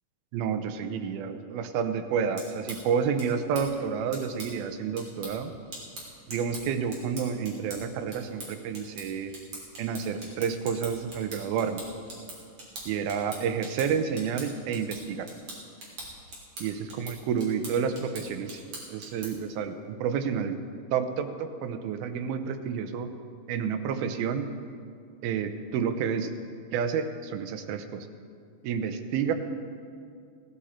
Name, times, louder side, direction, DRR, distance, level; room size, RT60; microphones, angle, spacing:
voice 1, 0.3-5.5 6.3-9.3 9.8-11.8 12.9-15.3 16.6-18.6 18.9-20.6 20.9-23.1 23.5-24.5 25.2-26.3 26.7-28.1 28.6-29.3, right 7 dB, 90° right, 8 dB, 2.7 m, -30 dB
sound 1, 2.1-19.5, right 1 dB, 45° right, 3.6 m, -44 dB
17.0 x 12.5 x 4.3 m, 2.3 s
omnidirectional pair, 4.2 m